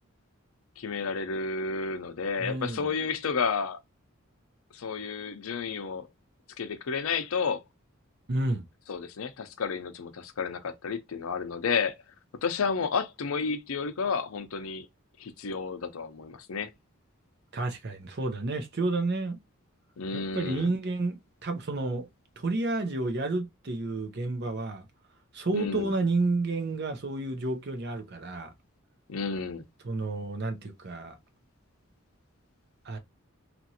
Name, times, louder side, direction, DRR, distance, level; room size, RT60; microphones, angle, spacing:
voice 1, 0.8-3.8 4.7-6.1 6.6-7.6 8.9-11.9 12.4-14.9 15.2-16.7 20.0-20.7 25.5-25.9 29.1-29.6, left 5 dB, 75° left, 0.5 m, -31 dB
voice 2, 2.4-2.8 8.3-8.7 17.5-19.4 20.1-22.1 22.4-24.9 25.3-28.5 29.8-31.2 32.8-33.0, right 2 dB, 50° right, 0.7 m, -30 dB
3.0 x 2.5 x 2.7 m
head